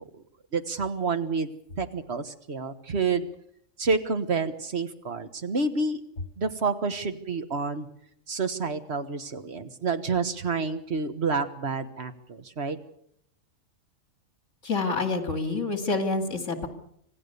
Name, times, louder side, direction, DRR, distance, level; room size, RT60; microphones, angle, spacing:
voice 1, 0.5-1.5 1.8-3.3 3.8-6.0 6.4-7.9 8.3-12.8, right 4 dB, 50° right, 9 dB, 1.6 m, -29 dB
voice 2, 14.6-16.7, left 3 dB, 65° left, 7 dB, 2.7 m, -27 dB
26.0 x 16.5 x 6.9 m, 0.71 s
omnidirectional pair, 1.4 m